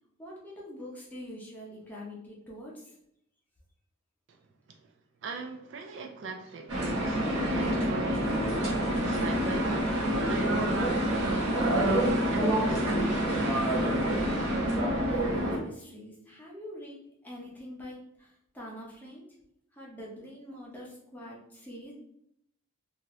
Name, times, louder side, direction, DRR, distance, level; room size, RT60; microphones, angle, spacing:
voice 1, 0.2-3.0 14.7-19.2 19.7-21.9, left 1 dB, 10° left, 0.7 m, -44 dB
voice 2, 5.2-14.0, right 4 dB, 55° right, 0.4 m, -40 dB
sound 1, 6.7-15.6, equal, 75° right, 1.0 m, -27 dB
2.7 x 2.6 x 3.0 m
head